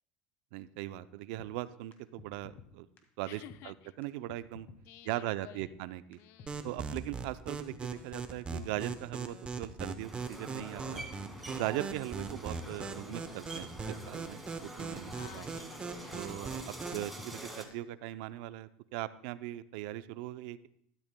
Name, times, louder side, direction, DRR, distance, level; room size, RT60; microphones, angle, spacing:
voice 1, 0.5-2.9 3.2-4.7 5.0-6.2 6.6-11.1 11.6-15.5 16.1-20.7, right 15 dB, 70° right, 14 dB, 0.5 m, -40 dB
sound 1, 1.4-1.5 1.9-2.7 3.0-3.1 3.5-3.6 4.0-4.1 4.3-4.8 5.1-5.2 5.6-5.7 6.1-6.2 6.4-6.9 7.2-7.3 7.7-7.8 8.2-9.0 9.3-9.4 9.8-9.9 10.3-10.4 10.6-11.1 11.4-11.5 11.9-12.0 12.4-12.5 12.7-13.2 13.5-13.6 14.0-14.1 14.5-14.6 14.8-15.3 15.6-15.7 16.1-16.2 16.6-16.7 16.9-17.4 17.7-17.8, left 6 dB, 45° left, 1.8 m, -52 dB
voice 2, 3.2-3.9 4.8-5.7 6.2-6.7 15.1-16.3, left 14 dB, 60° left, 15 dB, 0.5 m, -53 dB
sound 2, 6.5-17.1, right 4 dB, 20° right, 0.8 m, -40 dB
sound 3, 10.0-17.7, right 1 dB, ahead, 1.9 m, -46 dB
12.5 x 12.0 x 2.2 m, 0.69 s
supercardioid pair, 115°, 5 cm